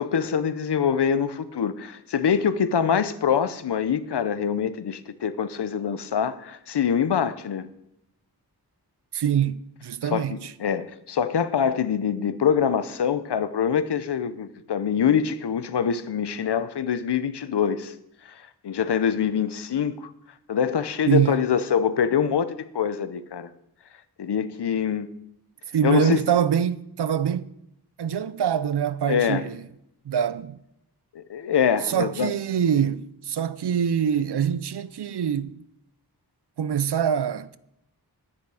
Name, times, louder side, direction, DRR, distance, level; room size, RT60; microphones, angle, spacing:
voice 1, 0.0-7.7 10.1-17.9 18.3-19.9 20.5-23.5 24.2-25.1 25.8-26.2 29.1-29.4 31.1-32.3, left 7 dB, 80° left, 0.8 m, -24 dB
voice 2, 9.1-10.5 21.1-21.4 25.7-27.5 28.0-29.6 30.1-30.6 31.8-35.6 36.6-37.6, right 8 dB, 80° right, 0.6 m, -24 dB
11.0 x 9.8 x 4.9 m
wide cardioid pair, 100°, 40 cm